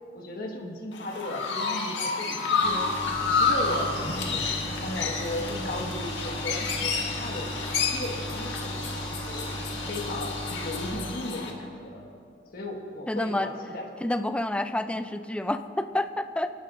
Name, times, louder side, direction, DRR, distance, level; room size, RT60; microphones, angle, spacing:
voice 1, 0.1-2.9 3.4-7.5 7.9-9.5 9.9-12.2 12.5-13.9 14.9-15.0, left 1 dB, 55° left, 1 dB, 1.5 m, -36 dB
Chirp tweet, 0.9-11.5, left 4 dB, 85° left, 1.5 m, -30 dB
sound 1, 2.6-10.9, equal, 30° left, 2.6 m, -36 dB
voice 2, 13.1-13.5 14.0-16.5, left 1 dB, 5° left, 10 dB, 0.4 m, -28 dB
25.5 x 11.0 x 2.5 m, 2.5 s
head